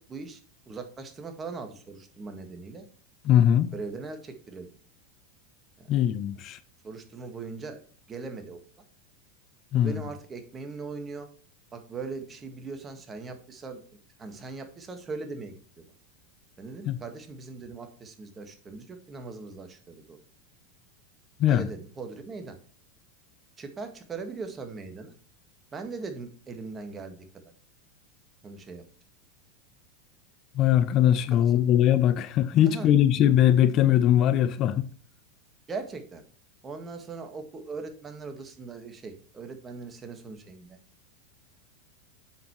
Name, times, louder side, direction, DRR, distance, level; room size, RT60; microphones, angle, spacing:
voice 1, 0.1-0.4 0.7-2.9 3.7-4.7 5.8-6.0 6.8-7.8 8.1-8.6 9.7-11.3 11.7-13.8 14.2-15.8 16.6-20.2 21.5-22.6 23.6-25.1 25.7-27.5 28.4-28.8 31.3-31.5 32.6-32.9 35.7-36.2 36.6-40.8, right 4 dB, 25° right, 1.7 m, -40 dB
voice 2, 3.2-3.7 5.9-6.6 9.7-10.0 16.9-17.0 21.4-21.7 30.5-34.9, left 11 dB, 45° left, 0.6 m, -21 dB
7.7 x 6.8 x 3.2 m
hypercardioid pair, 90°, 0 cm